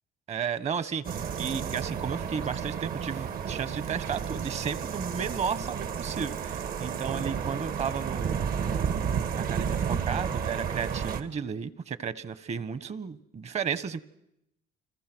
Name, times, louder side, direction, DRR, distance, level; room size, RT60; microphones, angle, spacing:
voice 1, 0.3-8.9 9.3-14.0, right 7 dB, 40° right, 16 dB, 1.3 m, -33 dB
sound 1, 1.0-11.2, right 7 dB, 60° right, 1.8 m, -32 dB
29.5 x 22.5 x 6.3 m, 0.81 s
cardioid pair, 110°, 17 cm